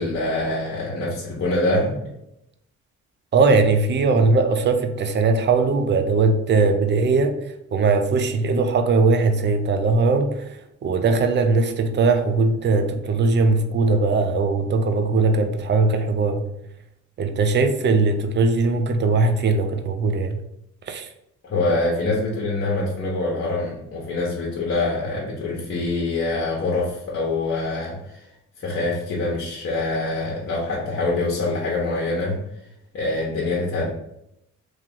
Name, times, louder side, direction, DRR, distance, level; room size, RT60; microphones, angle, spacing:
voice 1, 0.0-2.0 21.4-28.3 28.6-32.4 32.9-33.9, left 2 dB, 45° left, 1.1 m, -25 dB
voice 2, 3.3-7.4 7.7-16.4 17.2-20.4 20.9-21.1, right 3 dB, 35° right, 0.5 m, -20 dB
3.1 x 2.9 x 3.8 m
cardioid pair, 90°, 30 cm